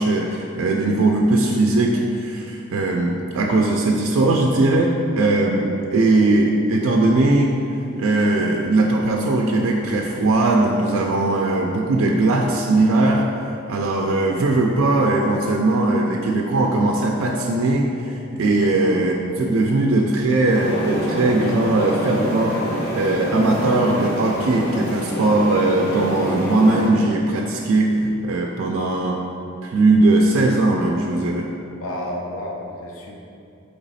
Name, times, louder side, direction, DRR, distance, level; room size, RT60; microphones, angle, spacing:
voice 1, 0.0-7.5 8.0-13.2 13.7-22.6 22.9-29.2 29.6-31.5, right 2 dB, 65° right, 0 dB, 0.3 m, -19 dB
sound 1, 20.5-26.9, equal, 50° left, 1.0 m, -27 dB
voice 2, 31.8-33.2, left 1 dB, 75° left, -1 dB, 0.5 m, -31 dB
3.9 x 3.4 x 4.0 m, 2.6 s
head